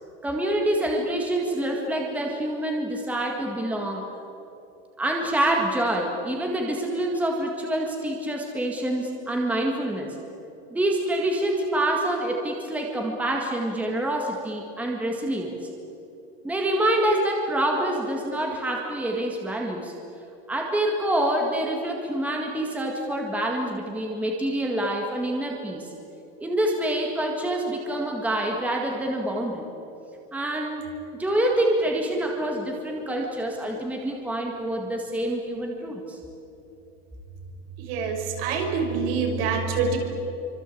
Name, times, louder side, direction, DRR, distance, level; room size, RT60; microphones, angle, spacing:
voice 1, 0.2-4.1 5.0-10.2 10.7-15.6 16.4-19.9 20.5-25.9 26.4-29.7 30.3-30.9 31.1-36.2, right 1 dB, 5° right, 0 dB, 1.9 m, -26 dB
voice 2, 37.8-40.0, right 5 dB, 60° right, 3 dB, 5.8 m, -26 dB
27.5 x 25.5 x 8.5 m, 3.0 s
supercardioid pair, 180°, 33 cm